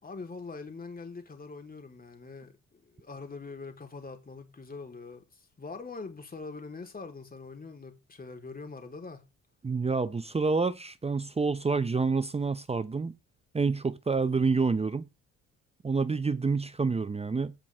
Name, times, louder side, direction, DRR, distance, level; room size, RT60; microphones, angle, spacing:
voice 1, 0.0-9.2, left 4 dB, 30° left, 3.9 m, -43 dB
voice 2, 9.6-13.1 13.5-15.1 15.8-17.5, right 4 dB, 20° right, 0.9 m, -28 dB
17.0 x 6.1 x 3.6 m
cardioid pair, 90°, 30 cm